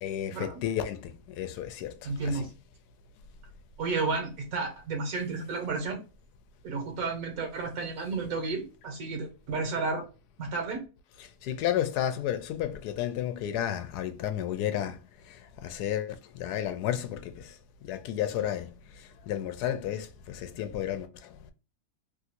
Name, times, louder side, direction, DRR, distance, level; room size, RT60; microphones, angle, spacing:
voice 1, 0.0-2.5 11.2-15.0 15.2-17.6 17.8-21.3, left 11 dB, 90° left, 1.1 m, -32 dB
voice 2, 2.0-2.5 3.8-6.0 6.6-10.0 10.4-10.8, right 4 dB, 70° right, 1.5 m, -32 dB
3.3 x 2.5 x 2.8 m
omnidirectional pair, 1.7 m